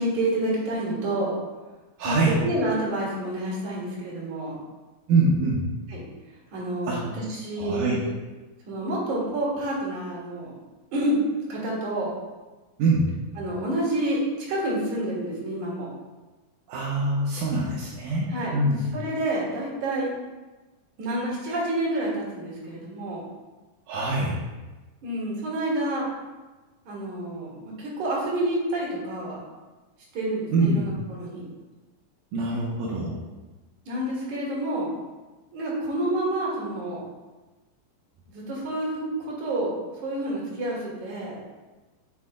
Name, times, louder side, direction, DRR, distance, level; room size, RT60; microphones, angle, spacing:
voice 1, 0.0-1.3 2.0-4.6 5.9-6.0 6.5-8.1 8.7-10.6 10.9-11.2 11.5-12.2 13.4-15.9 18.3-18.6 18.9-20.1 21.0-23.2 25.0-26.1 26.9-29.4 30.1-31.4 32.9-33.1 33.9-34.9 35.5-37.0 38.3-41.4, right 1 dB, 60° right, -5 dB, 3.2 m, -28 dB
voice 2, 2.0-2.4 5.1-5.6 6.8-7.0 7.6-8.0 12.8-13.1 16.7-18.8 23.9-24.4 30.5-30.8 32.3-33.2, right 2 dB, 75° right, -6 dB, 2.5 m, -24 dB
8.2 x 7.4 x 2.2 m, 1.2 s
omnidirectional pair, 4.1 m